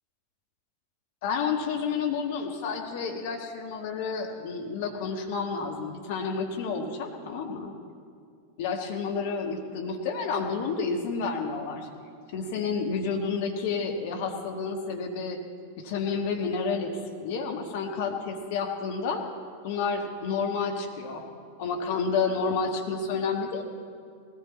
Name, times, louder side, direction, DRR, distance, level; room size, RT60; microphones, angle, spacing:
voice 1, 1.2-7.7 8.6-11.9 12.3-15.4 15.8-19.2 19.6-21.2 21.6-23.6, left 5 dB, 50° left, 2 dB, 1.5 m, -30 dB
20.0 x 15.5 x 4.1 m, 2.4 s
figure-of-eight pair, 90°, 0 cm